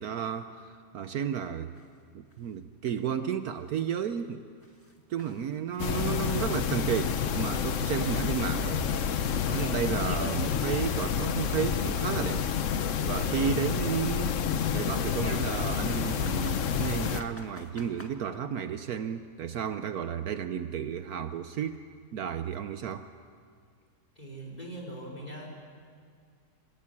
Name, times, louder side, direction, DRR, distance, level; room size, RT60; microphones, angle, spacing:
voice 1, 0.0-1.7 2.1-4.4 5.1-8.8 9.5-12.4 13.0-14.4 14.7-21.8 22.1-23.1, right 8 dB, 65° right, 9 dB, 1.2 m, -32 dB
sound 1, 1.3-1.4 1.8-1.9 2.3-2.4 2.9-3.0 3.5-3.6 4.0-4.1 4.6-7.1 7.3-12.0 12.3-14.4 15.2-18.1, equal, 10° left, 1.7 m, -46 dB
sound 2, 5.8-17.2, left 8 dB, 55° left, 1.1 m, -29 dB
voice 2, 24.1-25.5, right 1 dB, 25° left, -1 dB, 5.1 m, -41 dB
26.5 x 16.5 x 9.7 m, 2.1 s
omnidirectional pair, 1.7 m